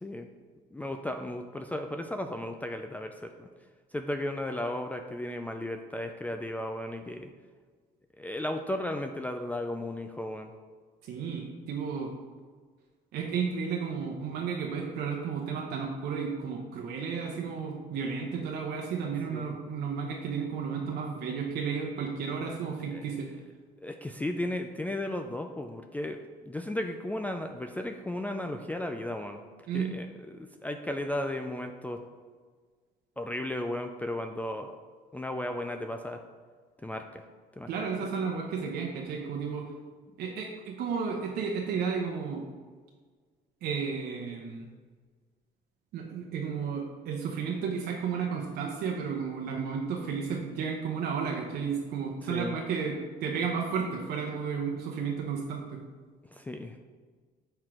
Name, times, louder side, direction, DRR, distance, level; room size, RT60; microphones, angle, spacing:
voice 1, 0.7-3.5 3.9-7.3 8.2-10.5 19.3-19.6 22.9-23.0 23.8-29.4 29.7-32.0 33.2-34.7 35.1-36.2 36.8-37.2 37.6-37.7 52.3-52.6 56.3-56.7, left 1 dB, 10° left, 5 dB, 0.3 m, -35 dB
voice 2, 11.0-12.1 13.1-23.3 29.7-29.9 37.7-39.6 40.2-42.4 43.6-44.7 45.9-55.8, right 6 dB, 70° right, 0 dB, 0.8 m, -33 dB
5.7 x 4.6 x 4.9 m, 1.5 s
cardioid pair, 110°, 17 cm